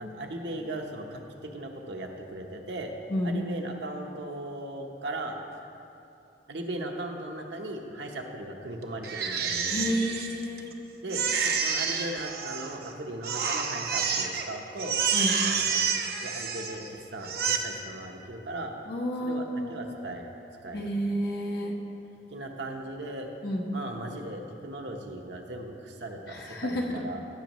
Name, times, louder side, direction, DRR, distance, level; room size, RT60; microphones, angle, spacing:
voice 1, 0.0-2.9 3.2-5.4 6.5-9.8 11.0-15.0 15.4-15.8 16.2-18.7 19.2-19.4 19.7-20.3 20.6-20.9 22.3-23.3 23.7-27.2, right 1 dB, 80° right, 2 dB, 0.9 m, -38 dB
Crying sobbing, 9.0-10.7 11.1-12.9 13.2-14.5 14.8-16.9 17.2-17.6, right 6 dB, 55° right, 0.7 m, -29 dB
voice 2, 9.7-10.7 15.1-15.3 18.9-19.8 20.7-21.8 23.4-23.7 26.3-26.8, equal, 65° left, -1 dB, 1.3 m, -30 dB
15.5 x 7.1 x 3.1 m, 2.8 s
head